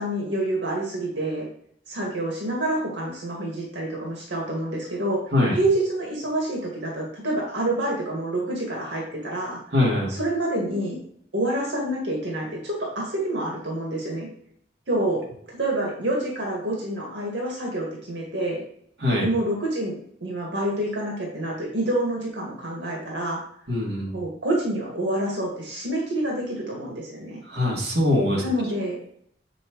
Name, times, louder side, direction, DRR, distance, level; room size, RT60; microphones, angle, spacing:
voice 1, 0.0-1.5 1.9-5.2 5.5-9.6 10.1-11.0 11.3-14.3 14.9-15.2 15.5-18.6 19.2-19.9 20.2-23.4 24.1-27.4 28.4-29.0, right 1 dB, 85° right, -2 dB, 2.1 m, -27 dB
voice 2, 9.7-10.2 19.0-19.3 23.7-24.1 27.5-28.4, left 1 dB, 65° right, -4 dB, 2.3 m, -22 dB
7.4 x 6.2 x 3.1 m, 0.65 s
head